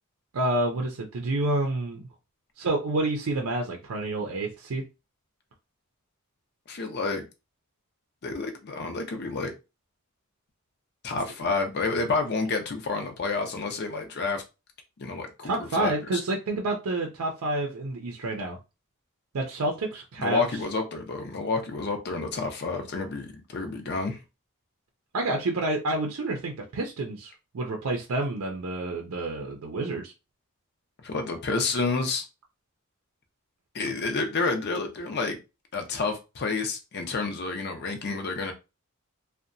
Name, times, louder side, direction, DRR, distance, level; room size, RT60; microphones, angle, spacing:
voice 1, 0.3-2.1 2.6-4.8 15.4-18.6 19.3-20.4 25.1-30.1 33.8-33.9, right 2 dB, 90° right, 0.5 m, -29 dB
voice 2, 6.7-7.2 8.2-9.5 11.0-14.4 15.0-16.2 20.2-24.2 31.0-32.2 33.7-35.4 35.7-38.5, left 3 dB, 50° left, 0.5 m, -29 dB
2.7 x 2.1 x 2.5 m
head